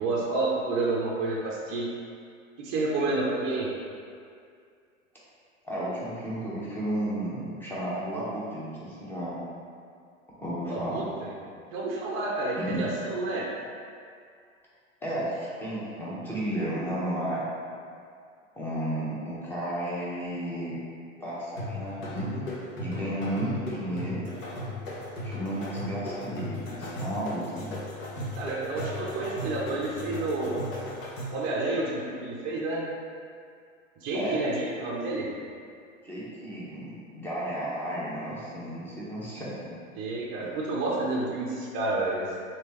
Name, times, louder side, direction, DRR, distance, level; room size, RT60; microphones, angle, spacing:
voice 1, 0.0-1.9 2.6-3.7 10.7-11.3 11.7-13.5 28.3-30.6 31.3-32.9 34.0-35.3 40.0-42.3, right 2 dB, 30° right, -4 dB, 0.5 m, -29 dB
voice 2, 5.6-9.4 10.4-11.0 12.6-12.8 15.0-17.4 18.5-20.8 21.2-22.5 22.8-24.3 25.2-27.7 34.1-34.4 36.0-39.7 40.4-40.5, right 1 dB, 5° left, -8 dB, 0.8 m, -33 dB
sound 1, 21.6-31.5, left 1 dB, 75° left, 1.0 m, -36 dB
3.2 x 2.7 x 3.0 m, 2.2 s
hypercardioid pair, 110°, 40 cm